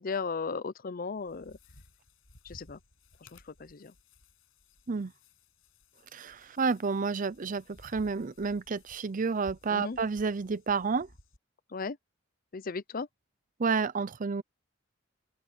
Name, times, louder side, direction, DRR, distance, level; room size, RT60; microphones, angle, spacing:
voice 1, 0.0-1.6 2.4-2.8 3.3-3.9 9.7-10.0 11.7-12.0 12.5-13.1, left 4 dB, 45° left, 0.6 m, -36 dB
sound 1, 1.1-11.4, left 1 dB, 85° left, 7.4 m, -58 dB
voice 2, 6.1-11.1 13.6-14.4, right 5 dB, 40° right, 0.6 m, -30 dB
open air
head